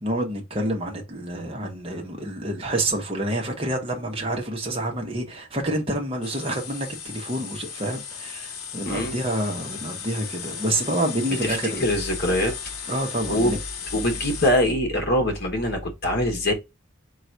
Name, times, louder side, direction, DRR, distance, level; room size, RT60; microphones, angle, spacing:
voice 1, 0.0-11.8 12.9-13.6, right 1 dB, 25° right, 0.9 m, -28 dB
sound 1, 6.2-14.5, left 7 dB, 80° left, 0.7 m, -36 dB
voice 2, 11.4-12.5 13.3-13.6 13.9-16.5, left 1 dB, 45° left, 1.0 m, -23 dB
3.8 x 2.4 x 4.4 m
head